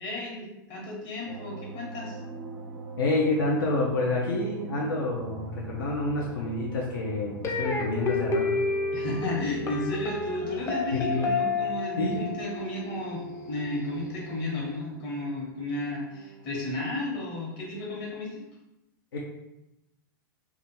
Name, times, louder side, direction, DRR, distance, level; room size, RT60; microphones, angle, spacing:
voice 1, 0.0-2.2 8.9-18.4, left 1 dB, 45° left, -3 dB, 1.0 m, -33 dB
sound 1, 1.3-18.0, right 1 dB, 80° right, 0.5 m, -45 dB
voice 2, 3.0-8.6 10.9-11.3 12.0-12.3 19.1-19.2, left 2 dB, 80° left, -3 dB, 0.5 m, -28 dB
sound 2, 7.4-14.5, left 3 dB, 25° left, 0.4 m, -31 dB
2.3 x 2.2 x 3.0 m, 0.92 s
hypercardioid pair, 115°, 12 cm